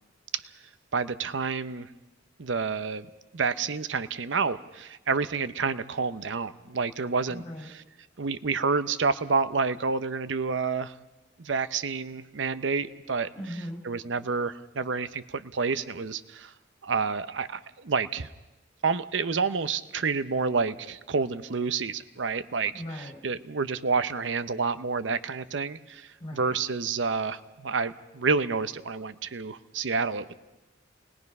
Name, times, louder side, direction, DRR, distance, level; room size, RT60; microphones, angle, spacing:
voice 1, 0.9-1.9 2.4-7.8 8.2-10.9 11.4-13.3 13.8-16.5 16.8-18.3 18.8-30.3, right 4 dB, 80° right, 13 dB, 0.7 m, -29 dB
voice 2, 7.3-7.7 13.3-13.8 22.7-23.2 26.2-26.5, equal, 30° left, 1 dB, 5.1 m, -38 dB
29.0 x 20.5 x 5.4 m, 1.0 s
head